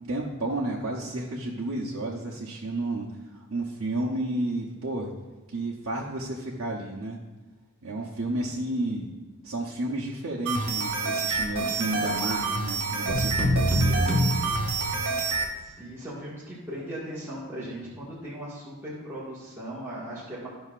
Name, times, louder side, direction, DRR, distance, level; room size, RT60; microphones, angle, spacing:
voice 1, 0.0-5.1 5.5-7.2 7.8-9.1 9.4-14.1, right 1 dB, 60° right, -4 dB, 0.8 m, -31 dB
sound 1, 10.4-15.5, right 4 dB, 80° right, 1.2 m, -28 dB
sound 2, 13.1-15.3, equal, 30° right, 1.3 m, -25 dB
voice 2, 15.3-20.5, right 1 dB, 10° right, -10 dB, 1.7 m, -38 dB
13.0 x 5.5 x 2.5 m, 1.2 s
head